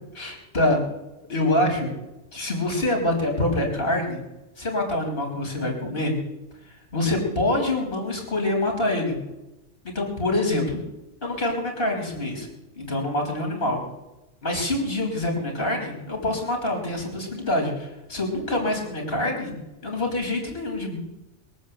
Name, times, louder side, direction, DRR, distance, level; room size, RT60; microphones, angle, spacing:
voice 1, 0.1-0.8 1.3-1.9 2.3-4.2 4.6-6.1 6.6-9.2 9.8-10.8 11.2-12.5 12.7-13.8 14.4-21.1, left 1 dB, 50° left, 2 dB, 3.5 m, -26 dB
21.5 x 7.5 x 8.2 m, 0.96 s
omnidirectional pair, 1.2 m